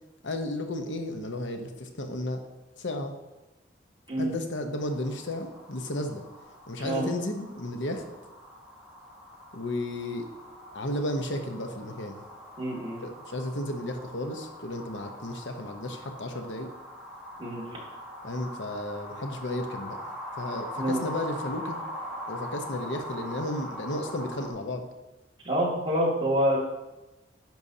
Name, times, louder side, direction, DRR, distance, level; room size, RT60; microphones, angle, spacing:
voice 1, 0.2-2.4 2.8-3.1 4.2-6.2 6.7-8.0 9.5-10.3 10.7-12.2 13.0-16.7 18.2-20.1 20.4-21.8 22.3-24.9, left 1 dB, 80° left, 4 dB, 0.9 m, -33 dB
sound 1, 4.8-24.5, left 1 dB, 5° right, 1.3 m, -42 dB
voice 2, 12.6-13.0 17.4-17.7 20.8-21.0 25.4-26.6, right 1 dB, 30° right, -5 dB, 2.2 m, -27 dB
10.5 x 6.3 x 2.8 m, 1.0 s
head